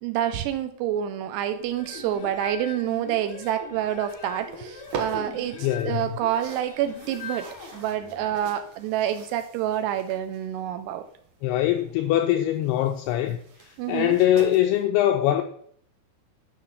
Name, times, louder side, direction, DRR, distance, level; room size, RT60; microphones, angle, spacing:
voice 1, 0.0-11.1 13.8-14.2, right 11 dB, 80° right, 2.6 m, -28 dB
sound 1, 1.6-8.4, left 5 dB, 70° left, 1.7 m, -41 dB
sound 2, 4.2-14.8, right 5 dB, 65° right, 2.1 m, -43 dB
voice 2, 5.6-6.0 11.4-15.4, left 12 dB, 85° left, 2.3 m, -23 dB
11.0 x 5.8 x 5.6 m
omnidirectional pair, 5.2 m